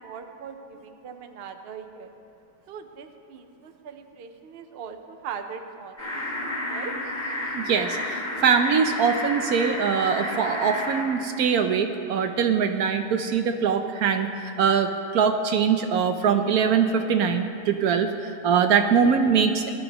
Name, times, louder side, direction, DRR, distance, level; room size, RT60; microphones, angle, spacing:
voice 1, 0.0-2.1 2.7-6.9, right 6 dB, 50° right, 6 dB, 0.8 m, -40 dB
sound 1, 6.0-11.0, left 1 dB, 10° left, 2.6 m, -31 dB
voice 2, 7.5-14.3 14.6-19.7, right 6 dB, 70° right, 7 dB, 1.0 m, -22 dB
19.5 x 12.5 x 3.0 m, 2.6 s
omnidirectional pair, 1.7 m